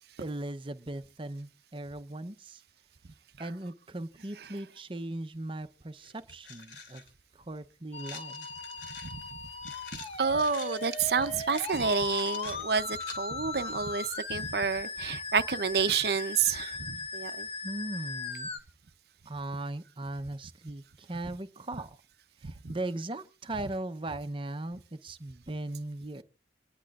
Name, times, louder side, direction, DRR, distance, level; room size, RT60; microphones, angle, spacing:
voice 1, 0.2-2.6 3.4-7.0 7.5-8.5 17.6-18.5 19.3-21.9 22.4-26.2, right 2 dB, 30° right, 0.7 m, -38 dB
sound 1, 5.5-5.6 6.0-7.1 8.0-13.2, left 5 dB, 80° left, 2.8 m, -47 dB
Musical instrument, 7.9-18.6, left 4 dB, 35° left, 1.1 m, -38 dB
voice 2, 9.9-17.5 22.4-22.7, right 6 dB, 60° right, 0.7 m, -29 dB
27.5 x 10.5 x 2.5 m
head